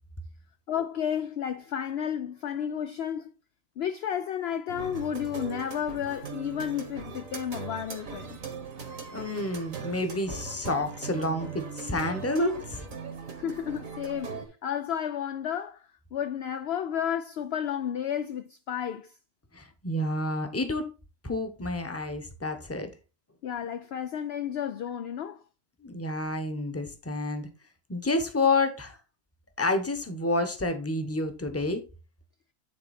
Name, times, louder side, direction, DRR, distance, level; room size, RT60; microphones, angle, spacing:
voice 1, 0.7-3.3 3.8-8.4 13.4-19.1 23.4-25.4, left 9 dB, 70° left, 0.6 m, -32 dB
sound 1, 4.7-14.5, right 5 dB, 60° right, 1.8 m, -40 dB
voice 2, 9.1-12.8 19.5-20.9 21.2-22.9 25.8-27.5 27.9-29.0 29.6-31.8, left 2 dB, 10° left, 0.8 m, -29 dB
9.7 x 4.0 x 4.2 m
omnidirectional pair, 1.6 m